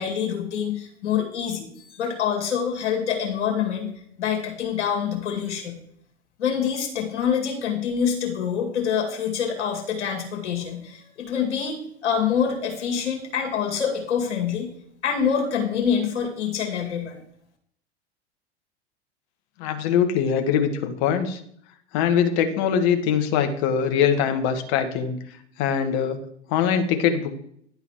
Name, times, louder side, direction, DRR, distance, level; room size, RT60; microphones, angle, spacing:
voice 1, 0.0-3.9 4.2-5.8 6.4-14.7 15.0-17.2, left 7 dB, 75° left, 1 dB, 2.2 m, -26 dB
voice 2, 19.6-21.4 21.9-25.2 25.6-26.2 26.5-27.4, left 8 dB, 50° left, 7 dB, 1.2 m, -22 dB
10.5 x 4.0 x 4.3 m, 0.67 s
hypercardioid pair, 90°, 35 cm